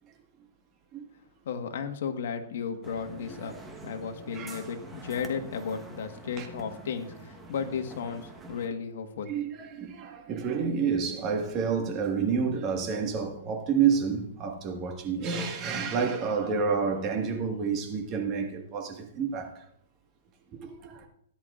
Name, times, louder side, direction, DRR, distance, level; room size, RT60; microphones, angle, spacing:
voice 1, 1.4-3.6 3.8-9.3, left 6 dB, 65° left, 1.4 m, -34 dB
sound 1, 2.8-8.7, right 2 dB, 5° right, 1.2 m, -46 dB
voice 2, 9.3-19.5 20.6-21.1, right 6 dB, 25° right, 1.6 m, -29 dB
17.5 x 10.5 x 2.5 m
hypercardioid pair, 155°, 0 cm